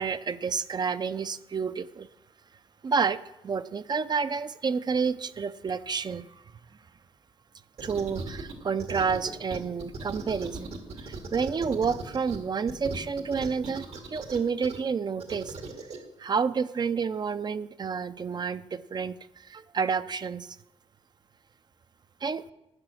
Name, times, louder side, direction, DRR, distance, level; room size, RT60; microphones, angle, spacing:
voice 1, 0.0-2.1 2.8-6.4 7.8-10.7 11.0-15.5 16.2-20.6 22.2-22.4, right 5 dB, 40° right, 13 dB, 0.5 m, -29 dB
sound 1, 7.8-8.5 8.8-12.4 12.7-14.8 15.2-16.0, right 4 dB, 85° right, 2.1 m, -38 dB
12.0 x 9.6 x 6.3 m, 0.91 s
wide cardioid pair, 115°, 10 cm